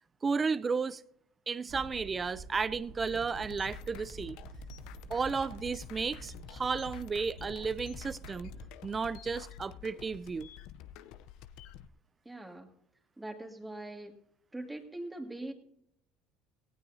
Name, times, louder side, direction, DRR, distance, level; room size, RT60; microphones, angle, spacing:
voice 1, 0.2-1.0 1.5-4.4 5.1-8.5 8.8-10.5, right 5 dB, 25° right, 0.5 m, -33 dB
sound 1, 1.7-8.7, right 4 dB, 55° right, 7.0 m, -49 dB
sound 2, 3.0-11.9, left 11 dB, 70° left, 0.6 m, -49 dB
voice 2, 12.3-12.7 13.2-14.2 14.5-15.5, right 1 dB, 10° right, 2.1 m, -42 dB
18.5 x 16.0 x 2.8 m
supercardioid pair, 90°, 0 cm